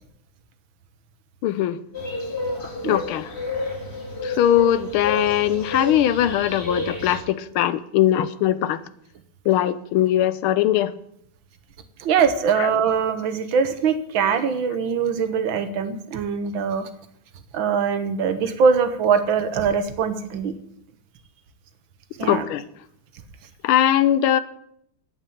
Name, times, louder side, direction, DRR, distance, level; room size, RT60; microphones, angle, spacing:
voice 1, 1.4-1.8 2.8-3.3 4.2-8.8 9.4-10.9 12.6-12.7 22.2-22.7 23.6-24.4, left 12 dB, 85° left, 16 dB, 1.6 m, -20 dB
sound 1, 1.9-7.2, left 2 dB, 30° left, 2.7 m, -30 dB
voice 2, 12.0-16.9 17.5-20.6 22.2-22.5, right 6 dB, 70° right, 10 dB, 1.8 m, -22 dB
9.2 x 8.9 x 8.6 m, 0.71 s
omnidirectional pair, 2.3 m